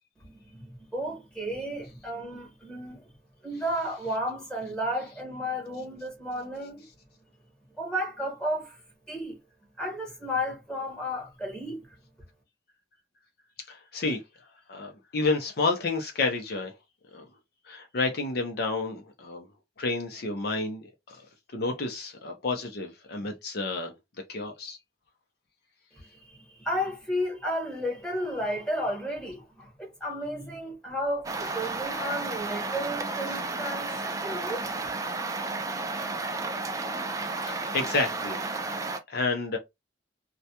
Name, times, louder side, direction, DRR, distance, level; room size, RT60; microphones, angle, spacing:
voice 1, 0.2-3.1 3.4-6.9 7.8-8.8 9.1-9.4 9.8-11.9 25.9-34.7, equal, 5° left, 1.1 m, -33 dB
voice 2, 13.7-14.2 14.7-16.7 17.1-17.2 17.7-19.5 19.8-21.3 21.5-23.9 24.3-24.8 37.4-38.4 39.1-39.6, left 3 dB, 60° left, 0.6 m, -30 dB
sound 1, 31.2-39.0, right 3 dB, 20° right, 0.3 m, -32 dB
2.3 x 2.1 x 2.8 m
head